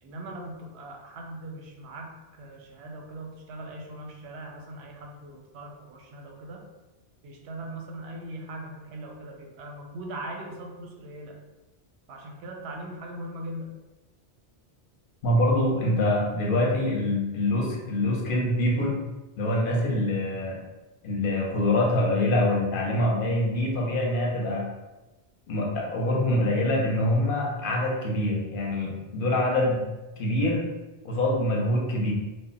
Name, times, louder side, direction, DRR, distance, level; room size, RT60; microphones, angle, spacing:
voice 1, 0.0-6.6 7.2-11.4 12.1-13.7, right 1 dB, 80° right, 1 dB, 0.8 m, -40 dB
voice 2, 15.2-19.0 19.4-20.6 21.0-24.7 25.5-29.8 30.2-30.7 31.0-32.1, left 1 dB, 60° left, -2 dB, 0.7 m, -25 dB
2.1 x 2.0 x 3.8 m, 1.1 s
omnidirectional pair, 1.1 m